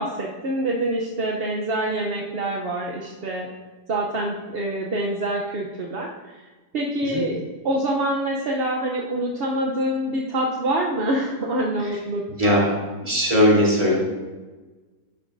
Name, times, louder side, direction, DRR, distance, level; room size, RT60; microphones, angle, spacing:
voice 1, 0.0-3.5 3.9-6.5 6.7-12.6, right 1 dB, 45° right, -2 dB, 0.9 m, -26 dB
voice 2, 13.0-13.9, equal, 20° right, -6 dB, 3.5 m, -18 dB
11.5 x 9.5 x 2.6 m, 1.3 s
omnidirectional pair, 1.7 m